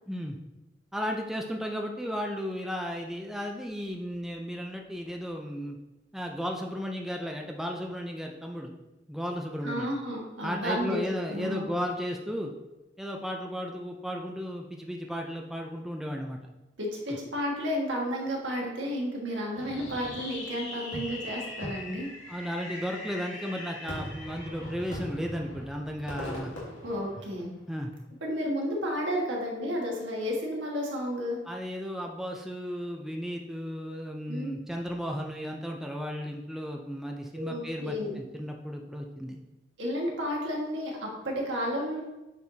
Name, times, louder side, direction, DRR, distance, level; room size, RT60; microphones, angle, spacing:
voice 1, 0.1-0.4 0.9-5.8 6.1-8.7 9.1-9.9 10.4-12.5 13.0-16.4 17.1-17.2 22.3-26.5 27.7-27.9 31.4-39.4, equal, ahead, 1 dB, 0.4 m, -34 dB
voice 2, 9.6-11.0 11.3-11.7 16.8-22.1 26.8-27.5 28.2-31.4 34.3-34.5 37.3-38.2 39.8-42.0, equal, 70° right, -2 dB, 1.5 m, -32 dB
Fireworks, 19.6-27.7, left 1 dB, 85° left, 2.0 m, -40 dB
8.2 x 4.6 x 2.7 m, 1.0 s
head